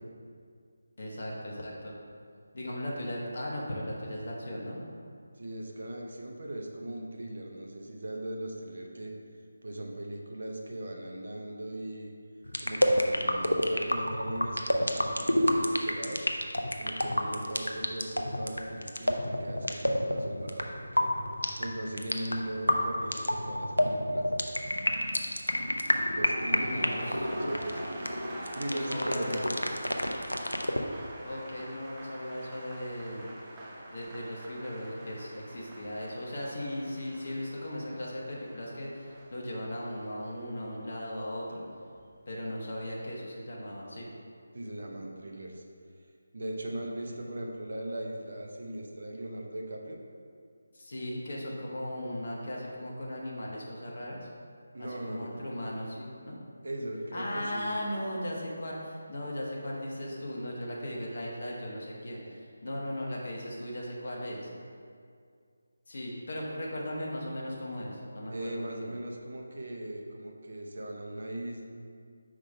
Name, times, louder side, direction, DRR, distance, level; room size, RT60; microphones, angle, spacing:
voice 1, 1.0-1.9 2.5-4.8 17.2-17.4 26.6-27.3 28.7-29.7 31.2-33.3 33.9-41.6 42.3-44.1 46.8-47.1 50.7-54.3 54.8-56.4 57.1-64.5 65.9-68.9, left 1 dB, 50° left, -3 dB, 1.2 m, -37 dB
voice 2, 5.4-9.1 9.6-12.1 12.6-16.2 16.8-21.2 21.6-24.2 26.1-28.0 28.5-29.7 44.5-45.6 46.3-50.0 54.7-55.4 56.6-57.7 68.3-71.6, right 1 dB, 55° right, 0 dB, 0.8 m, -39 dB
sound 1, 12.5-30.8, equal, 85° left, 0.5 m, -29 dB
sound 2, 26.0-42.1 42.4-42.8, right 1 dB, 15° right, 0.9 m, -46 dB
5.0 x 3.7 x 5.4 m, 2.2 s
figure-of-eight pair, 155°, 0 cm